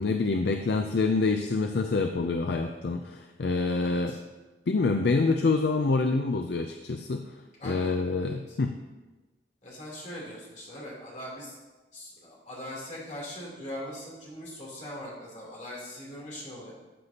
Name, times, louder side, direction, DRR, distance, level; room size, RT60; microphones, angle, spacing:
voice 1, 0.0-4.2 4.7-7.3 7.6-8.8, left 3 dB, 65° left, 6 dB, 0.5 m, -26 dB
voice 2, 3.8-4.2 7.6-7.9 8.2-8.6 9.6-11.6 11.9-16.7, left 1 dB, 45° left, -5 dB, 3.3 m, -41 dB
13.0 x 8.1 x 2.9 m, 1.2 s
head